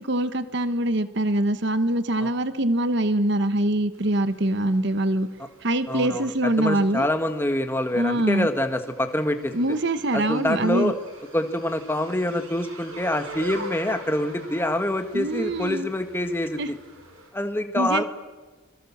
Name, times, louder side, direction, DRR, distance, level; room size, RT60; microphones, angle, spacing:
voice 1, 0.0-5.3 5.6-7.1 7.9-8.5 9.5-10.9 15.1-15.9 16.6-16.7 17.7-18.0, right 1 dB, 55° right, 12 dB, 1.1 m, -24 dB
sound 1, 3.9-17.3, right 1 dB, 80° right, 5.1 m, -44 dB
voice 2, 5.9-6.3 6.6-9.8 10.1-10.9 11.3-16.8 17.3-18.0, left 1 dB, 10° left, 7 dB, 1.5 m, -26 dB
25.5 x 22.0 x 7.3 m, 1.3 s
head